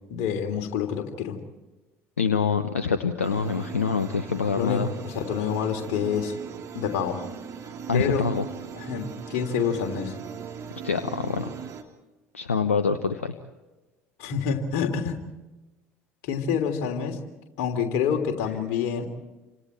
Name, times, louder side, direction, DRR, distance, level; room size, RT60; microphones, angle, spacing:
voice 1, 0.1-1.4 4.5-6.3 6.7-7.3 7.9-8.3 8.8-10.2 14.2-15.2 16.2-17.2 17.6-19.1, left 7 dB, 60° left, 5 dB, 3.2 m, -27 dB
voice 2, 2.2-4.9 7.9-8.4 10.8-11.5 12.3-13.3, left 5 dB, 85° left, 10 dB, 1.1 m, -25 dB
sound 1, 3.2-11.8, right 7 dB, 40° right, 3.0 m, -39 dB
29.5 x 26.0 x 4.5 m, 1.1 s
figure-of-eight pair, 65°, 7 cm